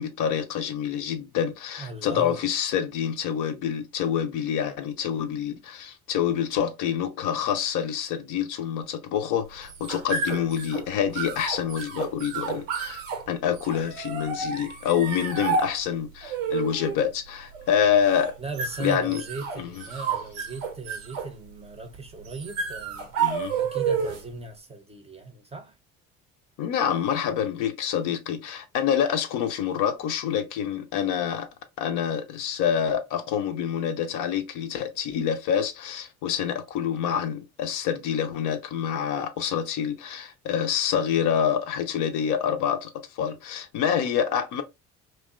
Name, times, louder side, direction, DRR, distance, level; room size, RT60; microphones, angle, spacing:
voice 1, 0.0-18.4 18.8-19.2 19.6-19.7 23.2-23.6 26.6-31.5 31.8-44.6, left 8 dB, 50° left, 0.5 m, -27 dB
voice 2, 1.8-2.4 18.4-23.1 23.6-25.8, right 4 dB, 15° right, 0.6 m, -38 dB
sound 1, 9.5-24.4, right 5 dB, 80° right, 0.7 m, -31 dB
2.8 x 2.0 x 2.3 m
hypercardioid pair, 55°, 40 cm